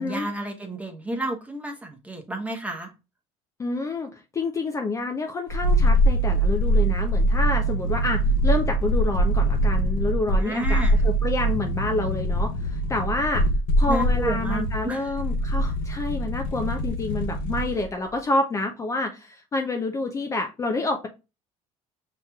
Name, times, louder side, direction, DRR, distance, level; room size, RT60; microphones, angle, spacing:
voice 1, 0.0-2.9 10.4-11.0 13.9-15.0, right 1 dB, 10° right, 0.9 m, -31 dB
voice 2, 3.6-13.5 13.8-21.1, left 2 dB, 20° left, 0.5 m, -28 dB
sound 1, 5.5-17.9 18.1-18.2, right 1 dB, 85° left, 0.9 m, -23 dB
5.5 x 3.1 x 2.3 m
cardioid pair, 125°, 14 cm